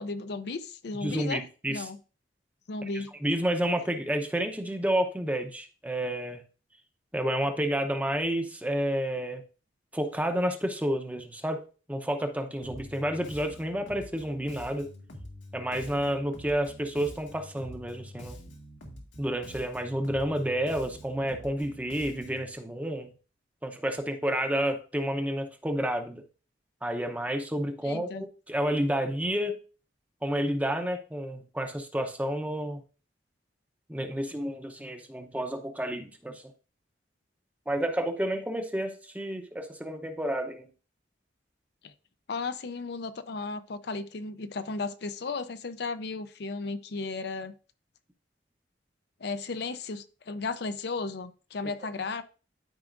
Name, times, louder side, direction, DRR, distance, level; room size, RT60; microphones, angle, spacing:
voice 1, 0.0-1.4 1.7-2.0 2.7-3.1 27.8-28.2 41.8-41.9 42.3-47.5 49.2-52.2, left 3 dB, 65° left, 11 dB, 0.6 m, -35 dB
voice 2, 1.0-1.8 3.2-6.4 7.1-9.4 9.9-11.6 11.9-14.9 15.5-18.4 19.2-23.1 23.6-26.2 26.8-29.6 30.2-32.8 33.9-36.4 37.7-40.7, right 1 dB, 10° right, 6 dB, 0.7 m, -30 dB
Bass guitar, 12.6-22.5, equal, 85° left, 1.8 m, -46 dB
12.0 x 4.9 x 2.5 m, 0.36 s
head